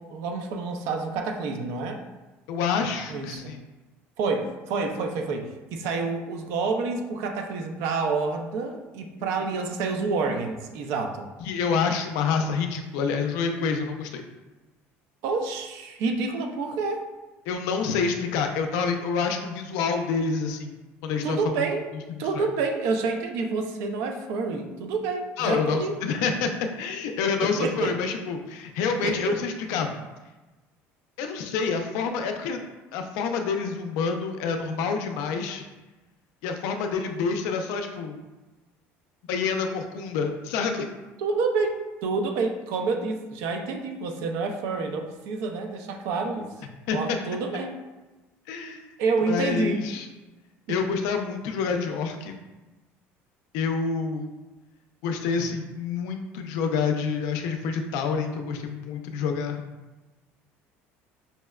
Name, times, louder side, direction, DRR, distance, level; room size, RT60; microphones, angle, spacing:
voice 1, 0.0-2.0 3.1-3.5 4.2-11.3 15.2-17.0 21.2-21.9 22.2-26.0 27.4-28.0 29.0-29.4 41.2-46.5 46.9-47.8 49.0-49.8, right 4 dB, 65° right, 4 dB, 0.5 m, -28 dB
voice 2, 2.5-3.6 11.4-14.2 17.5-21.5 22.1-22.4 25.4-26.5 26.8-29.9 31.2-32.6 32.9-35.6 36.4-38.2 39.3-40.8 46.9-47.2 48.5-48.8 49.3-50.1 50.7-52.3 53.5-54.3 55.0-59.6, left 5 dB, 75° left, 5 dB, 0.4 m, -27 dB
5.3 x 2.1 x 2.3 m, 1.1 s
cardioid pair, 170°, 5 cm